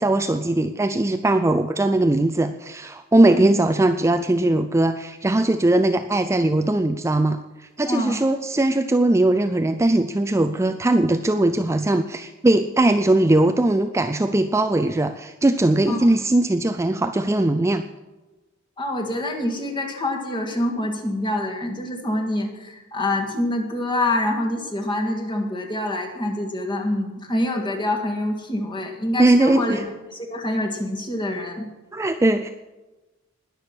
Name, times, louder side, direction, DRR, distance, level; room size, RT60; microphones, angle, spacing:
voice 1, 0.0-17.8 29.2-29.8 31.9-32.5, right 2 dB, 15° right, 7 dB, 0.4 m, -20 dB
voice 2, 7.9-8.2 15.9-16.1 18.8-31.7, left 1 dB, 20° left, 1 dB, 1.9 m, -26 dB
20.0 x 7.0 x 6.1 m, 1.1 s
head